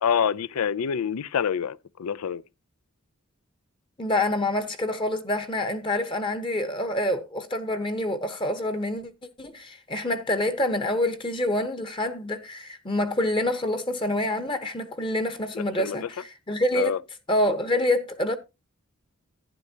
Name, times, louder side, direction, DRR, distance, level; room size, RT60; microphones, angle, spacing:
voice 1, 0.0-2.4 15.5-16.0 16.8-17.0, left 7 dB, 85° left, 0.4 m, -26 dB
voice 2, 4.0-9.1 9.4-17.0 17.3-18.4, left 1 dB, 25° left, 0.9 m, -27 dB
11.5 x 10.0 x 2.8 m
head